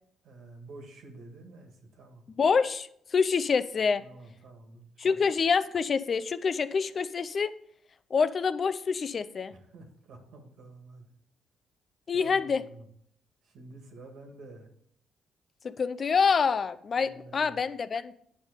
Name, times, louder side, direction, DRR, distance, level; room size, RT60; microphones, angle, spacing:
voice 1, 0.2-2.2 4.0-5.2 9.5-11.1 12.1-12.9 13.4-14.7 17.0-17.6, right 2 dB, 75° right, 4 dB, 1.9 m, -49 dB
voice 2, 2.3-4.0 5.0-7.5 8.1-9.5 12.1-12.6 15.6-18.1, left 5 dB, 45° left, 13 dB, 0.5 m, -26 dB
9.6 x 5.5 x 5.2 m, 0.69 s
cardioid pair, 90°, 0 cm